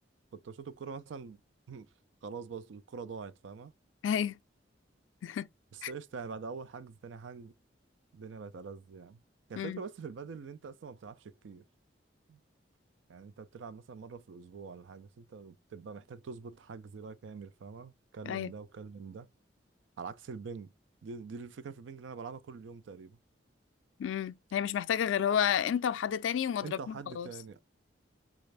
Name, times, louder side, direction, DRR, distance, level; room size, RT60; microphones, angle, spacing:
voice 1, 0.3-1.4 1.7-1.9 2.2-3.7 5.7-7.5 8.1-9.2 9.5-11.6 12.3-12.4 13.1-19.3 20.0-20.7 21.0-23.2 26.6-27.6, right 5 dB, 80° right, 0.4 m, -44 dB
voice 2, 4.0-4.4 5.2-5.5 5.8-5.9 9.6-9.8 18.3-18.5 24.0-27.3, left 8 dB, 85° left, 0.3 m, -31 dB
4.1 x 2.4 x 3.2 m
head